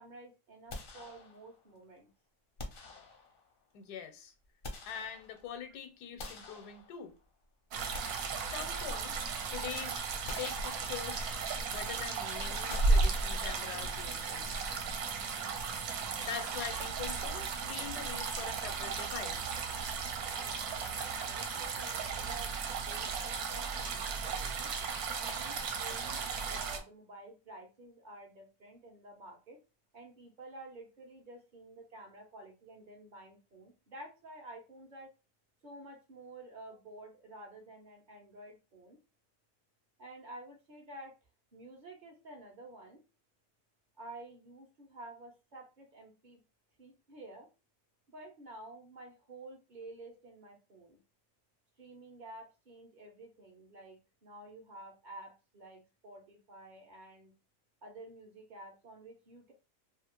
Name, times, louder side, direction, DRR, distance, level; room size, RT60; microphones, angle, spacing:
voice 1, 0.0-2.1 20.2-22.6 22.9-24.7 25.2-26.2 26.5-29.6 29.9-35.1 35.6-39.0 40.0-41.1 41.5-43.0 44.0-46.4 46.8-47.5 48.1-51.0 51.8-57.3 57.8-59.5, right 2 dB, 45° right, 0.6 m, -51 dB
sound 1, 0.7-1.7 2.6-3.6 4.3-5.6 6.2-7.3 7.7-9.2 9.6-9.7 10.3-11.3 12.7-13.8, left 3 dB, 60° left, 0.6 m, -48 dB
voice 2, 3.7-4.3 4.9-7.1 8.5-10.0 10.4-11.3 11.7-14.5 15.7-16.0 16.2-19.5, left 8 dB, 85° left, 1.2 m, -44 dB
sound 2, 7.7-26.8, right 4 dB, 75° right, 1.0 m, -35 dB
2.7 x 2.4 x 2.9 m
omnidirectional pair, 1.7 m